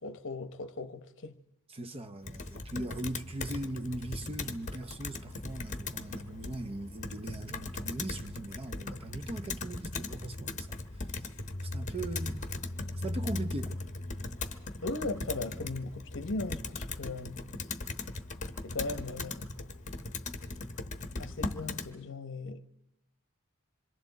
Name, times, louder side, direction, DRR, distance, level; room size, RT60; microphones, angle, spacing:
voice 1, 0.0-1.4 14.8-17.5 18.6-19.4 21.2-22.7, left 2 dB, 60° left, 0.8 m, -38 dB
voice 2, 1.7-11.3 11.6-12.4 13.0-13.8, right 2 dB, 25° right, 0.7 m, -40 dB
Computer keyboard, 2.2-21.9, left 3 dB, 35° left, 1.0 m, -39 dB
26.5 x 24.5 x 4.0 m
head